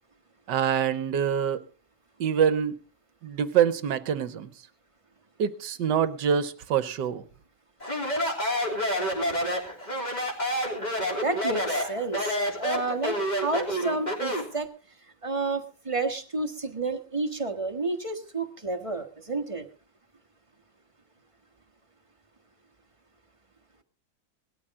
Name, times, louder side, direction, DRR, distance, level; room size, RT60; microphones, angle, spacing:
voice 1, 0.5-1.6 2.2-2.8 3.2-4.5 5.4-7.2, right 8 dB, 70° right, 14 dB, 1.4 m, -25 dB
Speech, 7.8-14.5, equal, 20° left, 3.4 m, -28 dB
voice 2, 11.0-14.7 15.2-19.6, right 3 dB, 20° right, 5 dB, 1.2 m, -30 dB
18.5 x 13.0 x 3.6 m, 0.35 s
omnidirectional pair, 2.0 m